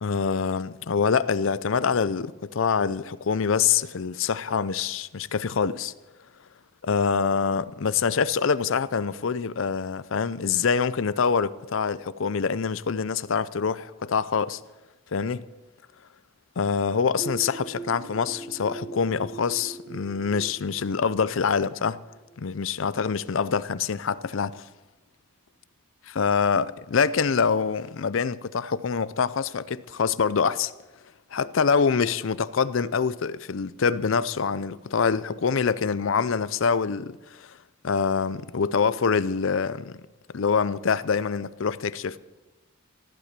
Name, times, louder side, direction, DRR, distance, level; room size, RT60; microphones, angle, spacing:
voice 1, 0.0-5.9 6.8-14.6 15.1-15.4 16.6-22.0 22.4-24.6 26.1-30.7 31.3-37.6 37.8-40.0 40.3-42.2, left 6 dB, 70° left, 0.5 m, -25 dB
sound 1, 17.2-22.7, right 3 dB, 10° right, 1.9 m, -41 dB
15.0 x 11.5 x 6.7 m
head